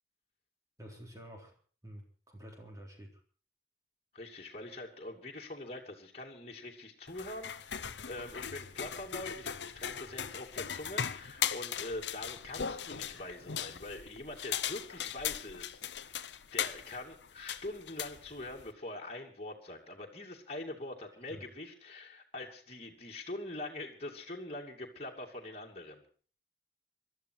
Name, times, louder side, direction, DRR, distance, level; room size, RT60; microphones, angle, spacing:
voice 1, 0.8-1.5 1.8-3.2 10.0-10.1 21.3-21.5, equal, 15° right, 1 dB, 3.8 m, -49 dB
voice 2, 4.1-26.0, left 2 dB, 30° left, -1 dB, 2.6 m, -44 dB
sound 1, 7.1-18.7, left 8 dB, 70° left, 0.8 m, -39 dB
22.5 x 13.0 x 4.7 m, 0.41 s
head